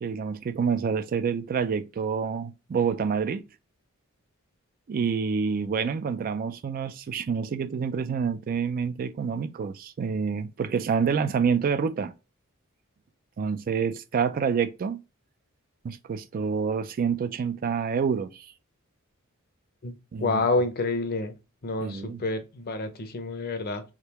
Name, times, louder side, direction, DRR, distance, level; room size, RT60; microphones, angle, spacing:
voice 1, 0.0-3.4 4.9-12.1 13.4-15.0 15.8-18.5 20.1-20.4 21.8-22.2, right 6 dB, 40° right, 0.3 m, -27 dB
voice 2, 19.8-21.3 21.6-23.8, left 3 dB, 45° left, 0.6 m, -28 dB
3.7 x 3.2 x 2.9 m
head